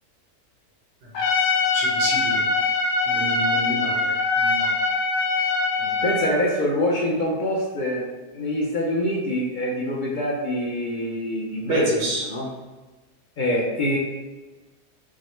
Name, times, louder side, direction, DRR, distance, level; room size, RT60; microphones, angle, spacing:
Trumpet, 1.2-6.4, left 3 dB, 85° left, 1.2 m, -23 dB
voice 1, 1.7-2.4 3.1-4.7 5.8-5.9 11.6-12.2, right 1 dB, 85° right, -5 dB, 1.5 m, -27 dB
voice 2, 6.0-8.0 8.3-12.5 13.4-14.0, left 1 dB, 55° left, -4 dB, 0.5 m, -25 dB
6.0 x 2.1 x 3.1 m, 1.2 s
omnidirectional pair, 1.6 m